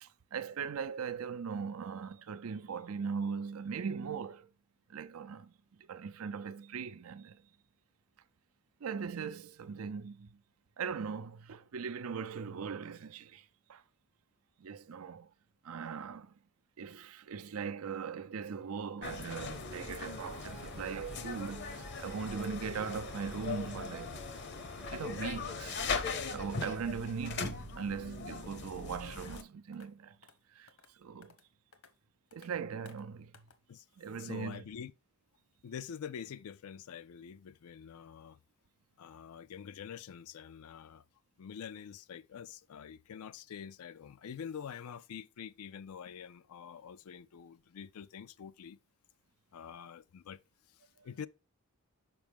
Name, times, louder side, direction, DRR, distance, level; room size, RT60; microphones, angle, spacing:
voice 1, 0.0-4.5 4.9-5.5 5.8-7.4 8.8-10.4 10.8-13.8 14.6-15.3 15.6-16.3 16.8-24.2 24.9-25.8 26.3-30.2 30.5-31.3 32.3-33.3 34.0-34.6 51.0-51.1, right 6 dB, 80° right, 0.5 m, -40 dB
sound 1, 19.0-29.4, left 4 dB, 50° left, 0.7 m, -40 dB
sound 2, 19.3-26.7, equal, 5° right, 0.5 m, -53 dB
sound 3, 28.9-29.0 29.3-29.4 29.7-29.9 30.2-30.4 30.7-30.9 31.2-31.5 31.7-31.9 32.3-32.5 32.9-33.0 33.3-33.6, left 5 dB, 70° left, 1.0 m, -59 dB
voice 2, 34.2-34.9 35.6-38.4 39.0-41.0 41.4-48.8 49.5-50.4 50.7-51.3, left 7 dB, 85° left, 0.4 m, -46 dB
6.0 x 5.2 x 3.4 m
head